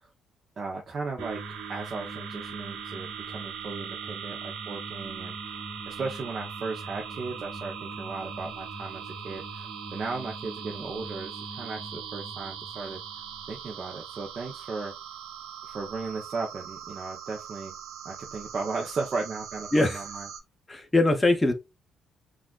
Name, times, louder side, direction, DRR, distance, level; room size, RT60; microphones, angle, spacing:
voice 1, 0.6-1.4 1.7-13.0 13.5-14.9 15.6-17.7 18.0-20.3, right 4 dB, 45° right, 0.6 m, -36 dB
sound 1, 1.2-14.3, right 2 dB, 10° right, 1.0 m, -44 dB
sound 2, 1.2-20.4, right 8 dB, 90° right, 0.6 m, -41 dB
voice 2, 20.7-21.5, left 2 dB, 15° left, 0.6 m, -22 dB
5.9 x 2.4 x 2.3 m
cardioid pair, 90°, 0 cm